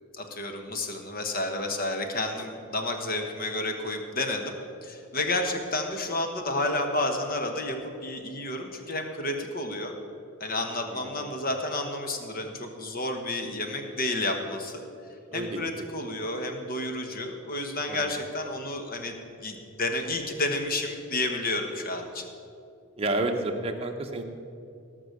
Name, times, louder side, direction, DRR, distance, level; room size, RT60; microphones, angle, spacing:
voice 1, 0.1-4.5 4.8-9.9 10.4-14.8 15.3-22.3, left 2 dB, 40° left, 4 dB, 1.3 m, -31 dB
voice 2, 10.8-11.3 15.3-15.6 17.9-18.1 23.0-24.2, right 2 dB, 25° right, 3 dB, 0.9 m, -30 dB
18.0 x 6.1 x 6.7 m, 2.6 s
head